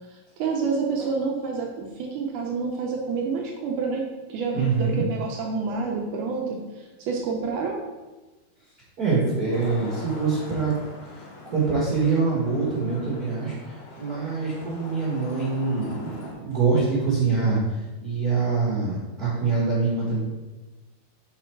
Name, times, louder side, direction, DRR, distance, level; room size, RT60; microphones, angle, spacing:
voice 1, 0.1-7.8, right 4 dB, 80° right, 0 dB, 1.8 m, -28 dB
voice 2, 4.5-5.1 9.0-11.2 11.5-20.2, right 4 dB, 55° right, -8 dB, 1.0 m, -25 dB
Traffic noise roadway noise, 9.5-16.3, left 2 dB, 80° left, 3.0 m, -43 dB
6.0 x 4.5 x 4.5 m, 1.2 s
omnidirectional pair, 4.3 m